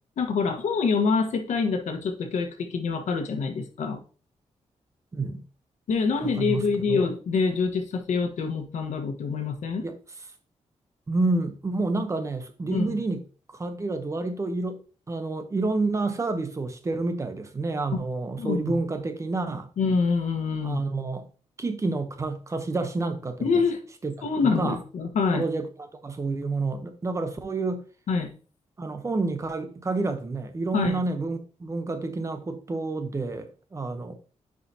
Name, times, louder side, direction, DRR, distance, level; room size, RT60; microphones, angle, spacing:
voice 1, 0.2-4.0 5.9-9.8 12.7-13.0 18.4-18.7 19.8-20.8 23.4-23.8 24.2-25.5 28.1-28.3 30.7-31.0, left 5 dB, 90° left, 1.3 m, -26 dB
voice 2, 5.1-5.4 6.2-7.1 9.8-10.0 11.1-13.2 13.5-14.8 15.1-19.7 20.6-21.3 21.6-23.6 24.0-24.8 25.3-27.8 28.8-34.1, right 3 dB, 25° right, 0.8 m, -29 dB
9.7 x 4.9 x 2.8 m
wide cardioid pair, 160°, 12 cm